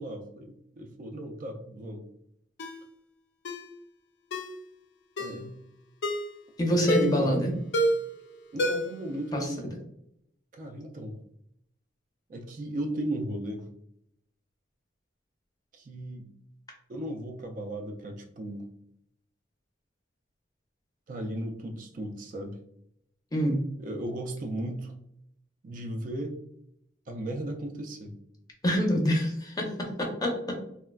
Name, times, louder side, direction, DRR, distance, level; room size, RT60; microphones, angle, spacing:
voice 1, 0.0-2.0 5.2-5.5 6.7-7.6 8.5-9.8 10.5-11.2 12.3-13.7 15.7-16.3 16.9-18.7 21.1-22.6 23.8-24.9 25.6-26.3 27.1-28.2, right 1 dB, 45° right, 4 dB, 0.3 m, -36 dB
Ringtone, 2.6-2.8 3.4-3.7 4.3-4.6 5.2-5.4 6.0-6.3 6.9-7.2 7.7-8.1 8.6-9.0 9.3-9.4, equal, 70° left, 0.4 m, -28 dB
voice 2, 6.6-7.5 9.3-9.5 23.3-23.6 28.6-30.5, equal, 20° left, 1 dB, 0.5 m, -26 dB
3.2 x 2.1 x 2.2 m, 0.74 s
head